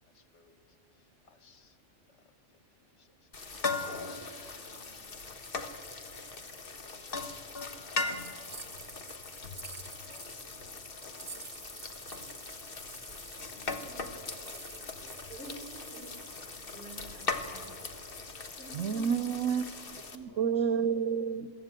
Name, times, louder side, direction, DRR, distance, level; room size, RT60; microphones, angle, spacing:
voice 1, 0.1-0.6 1.0-1.8 2.1-2.3 3.0-5.4 7.5-8.9 10.0-11.5 13.4-14.4 15.0-15.9 16.5-16.6 20.1-20.9, left 3 dB, 65° left, 9 dB, 1.6 m, -61 dB
sound 1, 3.3-20.2, left 4 dB, 50° left, 1.5 m, -40 dB
sound 2, 8.2-10.4 11.0-18.5, right 4 dB, 40° right, 1.4 m, -50 dB
voice 2, 15.3-16.3 16.7-18.1 18.6-19.2 20.6-20.7, right 2 dB, 5° left, 2 dB, 4.0 m, -49 dB
voice 3, 18.7-19.6 20.1-21.5, right 7 dB, 80° right, 16 dB, 1.1 m, -29 dB
23.0 x 15.0 x 9.0 m, 2.5 s
omnidirectional pair, 1.3 m